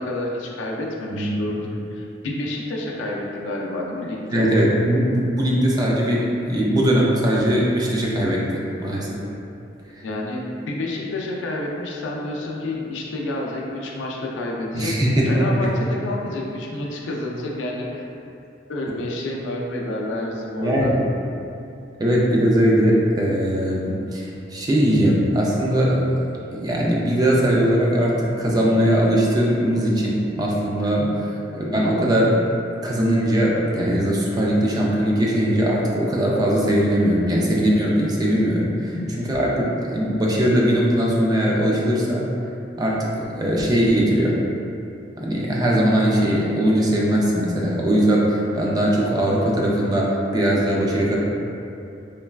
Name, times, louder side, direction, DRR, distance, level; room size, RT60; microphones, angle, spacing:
voice 1, 0.0-4.5 10.0-18.1 18.7-20.9 30.8-31.1 38.8-39.1, left 1 dB, 80° left, -1 dB, 0.4 m, -29 dB
voice 2, 4.3-9.2 14.7-15.5 20.6-21.1 22.0-31.1 31.5-32.4 32.8-42.2 42.8-44.4 45.2-51.2, equal, 20° right, -4 dB, 0.3 m, -20 dB
3.2 x 2.2 x 2.3 m, 2.7 s
head